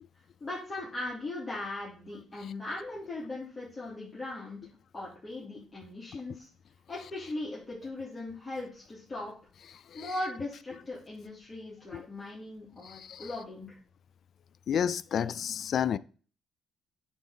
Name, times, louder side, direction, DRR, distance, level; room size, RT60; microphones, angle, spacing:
voice 1, 0.4-4.7 4.9-6.5 6.9-9.3 9.9-13.7, left 2 dB, 25° left, 2.9 m, -39 dB
voice 2, 12.9-13.2 14.7-16.0, left 8 dB, 60° left, 0.4 m, -30 dB
8.8 x 4.0 x 5.7 m
cardioid pair, 90°, 0 cm